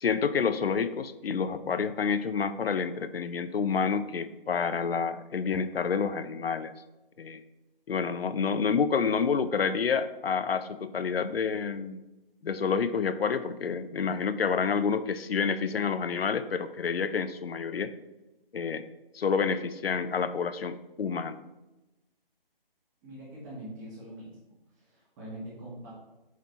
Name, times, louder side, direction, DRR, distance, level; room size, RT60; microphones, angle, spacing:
voice 1, 0.0-6.7 7.2-7.4 7.9-12.0 12.4-17.9 18.5-18.8 19.1-21.4, left 6 dB, 90° left, 13 dB, 0.6 m, -28 dB
voice 2, 23.0-24.4 24.7-25.9, right 1 dB, 20° right, -6 dB, 1.6 m, -43 dB
7.2 x 4.2 x 4.3 m, 1.0 s
figure-of-eight pair, 160°, 29 cm